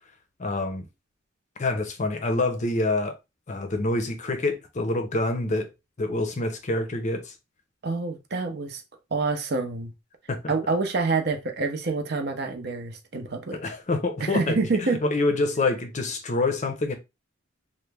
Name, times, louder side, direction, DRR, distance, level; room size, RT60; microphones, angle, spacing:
voice 1, 0.4-0.8 1.6-3.2 3.5-5.7 6.0-7.3 10.3-10.5 13.5-16.9, left 2 dB, 35° left, 0.6 m, -26 dB
voice 2, 7.8-8.8 9.1-9.9 10.5-13.6 14.2-15.0, right 3 dB, 55° right, 0.6 m, -27 dB
3.0 x 2.1 x 3.3 m
head